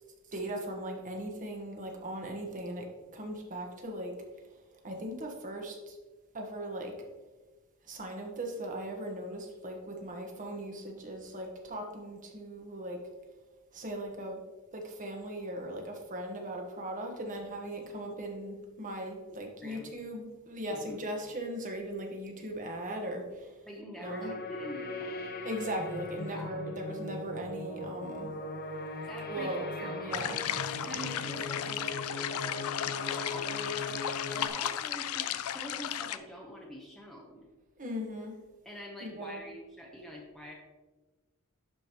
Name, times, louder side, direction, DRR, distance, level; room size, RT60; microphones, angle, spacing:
voice 1, 0.3-4.1 4.8-6.0 6.3-6.9 7.8-13.0 13.7-14.4 14.7-23.6 24.0-24.3 25.4-28.3 29.3-30.4 37.8-38.3 39.0-39.4, right 1 dB, 40° right, 2 dB, 1.3 m, -38 dB
voice 2, 19.3-19.9 20.7-21.0 23.7-25.4 26.3-26.5 29.1-30.2 30.8-37.5 38.6-40.5, equal, ahead, -2 dB, 0.8 m, -46 dB
sound 1, 24.0-34.5, left 2 dB, 45° left, 0.7 m, -39 dB
sound 2, 30.1-36.2, left 10 dB, 75° left, 0.4 m, -35 dB
11.5 x 5.0 x 3.0 m, 1.2 s
head